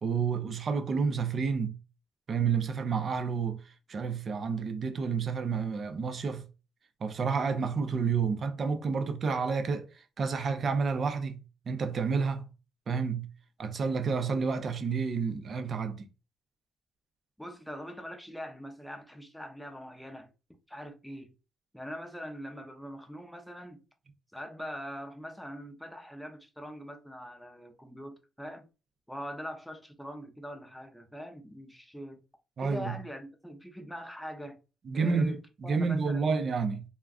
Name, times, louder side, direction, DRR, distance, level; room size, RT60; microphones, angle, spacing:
voice 1, 0.0-1.7 2.3-6.4 7.0-11.4 11.7-12.5 12.9-13.3 13.6-16.1 32.6-32.9 34.9-36.8, right 5 dB, 50° right, 0.5 m, -30 dB
voice 2, 17.4-20.3 20.7-21.3 21.7-23.8 24.3-28.7 29.1-32.2 32.6-34.6 34.9-35.4 35.6-36.2, equal, ahead, 0.6 m, -42 dB
2.4 x 2.2 x 3.5 m
cardioid pair, 90°, 0 cm